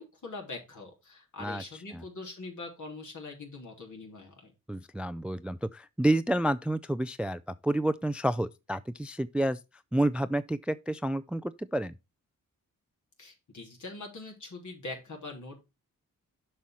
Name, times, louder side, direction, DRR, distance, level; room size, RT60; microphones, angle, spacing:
voice 1, 0.0-4.5 13.2-15.6, left 3 dB, 60° left, 3.4 m, -43 dB
voice 2, 4.7-9.6 9.9-11.9, right 1 dB, 5° right, 0.4 m, -29 dB
7.3 x 5.7 x 4.5 m
cardioid pair, 55°, 34 cm